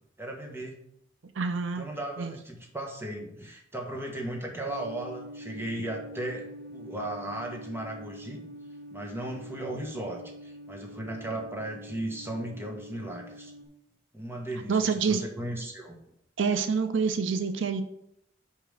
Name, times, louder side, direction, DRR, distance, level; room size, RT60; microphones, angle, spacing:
voice 1, 0.2-0.8 1.8-8.4 8.9-13.5 14.1-16.0, right 1 dB, 15° right, 1 dB, 1.4 m, -36 dB
voice 2, 1.4-1.9 2.2-2.3 14.7-15.2 16.4-17.8, right 5 dB, 90° right, 9 dB, 0.6 m, -27 dB
sound 1, 4.7-13.6, equal, 55° right, 1.1 m, -45 dB
5.4 x 5.0 x 6.4 m, 0.76 s
head